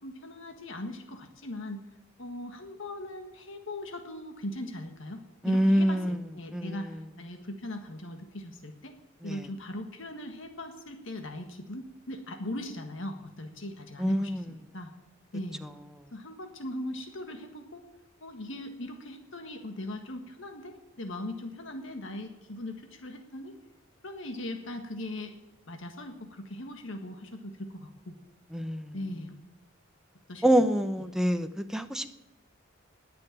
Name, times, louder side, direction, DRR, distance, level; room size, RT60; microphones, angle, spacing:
voice 1, 0.0-1.8 2.2-9.0 9.2-14.9 15.3-15.6 16.1-17.9 18.2-23.6 24.0-25.3 25.7-28.2 28.9-29.4 30.3-30.5, left 1 dB, 65° left, 5 dB, 1.6 m, -39 dB
voice 2, 5.4-6.2 6.5-7.0 9.2-9.4 14.0-14.4 28.5-29.0 30.4-32.2, equal, ahead, 8 dB, 0.8 m, -26 dB
20.0 x 6.9 x 8.7 m, 1.0 s
head